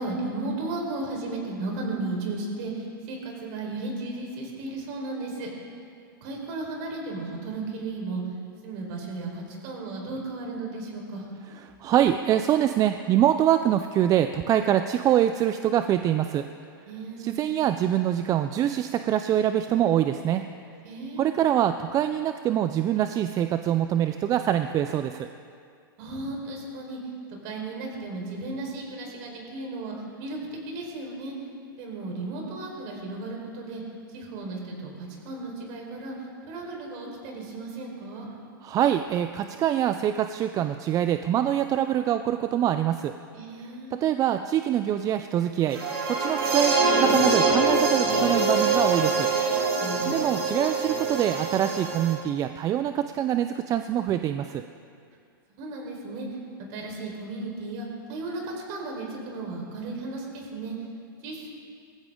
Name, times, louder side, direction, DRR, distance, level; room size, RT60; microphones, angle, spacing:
voice 1, 0.0-5.5 6.2-8.2 8.6-11.3 16.8-17.5 20.8-21.3 26.0-27.0 27.4-29.9 30.2-30.4 30.7-31.3 31.8-33.8 34.1-36.1 36.5-38.3 43.3-44.1 49.8-50.3 55.5-56.3 56.7-58.4 58.7-60.7 61.2-61.5, right 2 dB, 50° right, 0 dB, 4.5 m, -35 dB
voice 2, 11.8-16.4 17.2-20.4 21.2-25.3 38.6-43.1 43.9-45.8 46.1-49.3 50.1-54.6, right 11 dB, 30° right, 9 dB, 0.5 m, -24 dB
sound 1, 45.7-52.1, right 3 dB, 80° right, 3.5 m, -24 dB
20.5 x 15.0 x 3.8 m, 2.3 s
hypercardioid pair, 120°, 12 cm